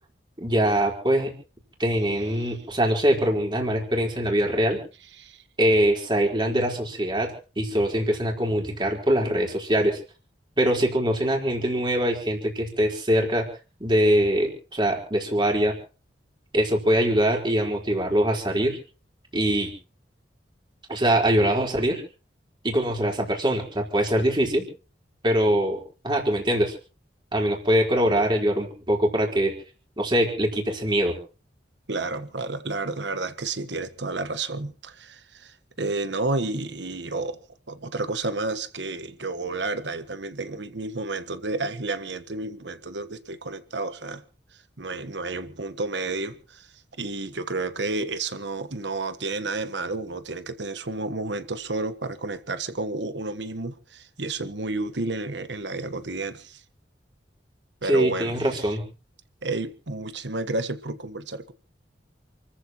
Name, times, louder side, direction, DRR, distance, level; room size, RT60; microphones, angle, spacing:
voice 1, 0.4-1.3 1.8-4.8 5.6-10.0 10.6-13.5 13.8-15.7 16.5-18.8 19.3-19.7 20.9-22.0 22.6-24.7 25.2-26.7 27.3-29.6 30.0-31.2 57.9-58.8, equal, 25° right, 4.5 m, -23 dB
voice 2, 31.9-37.4 37.7-44.2 44.8-46.7 47.0-56.6 57.8-58.3 59.4-61.5, right 3 dB, 75° right, 1.4 m, -31 dB
28.5 x 14.5 x 3.1 m
head